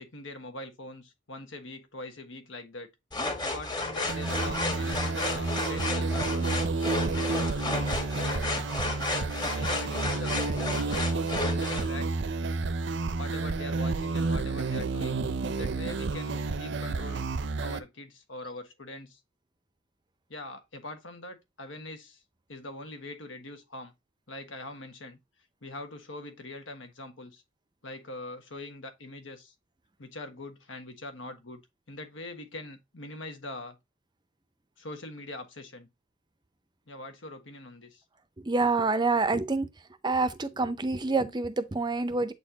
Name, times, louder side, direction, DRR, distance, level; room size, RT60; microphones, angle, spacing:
voice 1, 0.0-2.9 3.4-6.7 7.0-8.7 9.4-12.2 13.2-15.2 15.5-17.2 17.6-19.2 20.3-22.2 22.5-23.9 24.3-25.2 25.6-27.4 27.8-29.5 30.0-31.6 31.9-33.8 34.8-35.9 36.9-38.0, left 2 dB, 75° left, 1.4 m, -42 dB
sound 1, 3.1-11.9, left 2 dB, 20° left, 1.4 m, -33 dB
sound 2, 4.1-17.8, right 3 dB, 65° right, 0.6 m, -30 dB
voice 2, 38.4-39.7 40.0-42.3, right 3 dB, 20° right, 0.6 m, -27 dB
7.9 x 4.3 x 2.8 m
head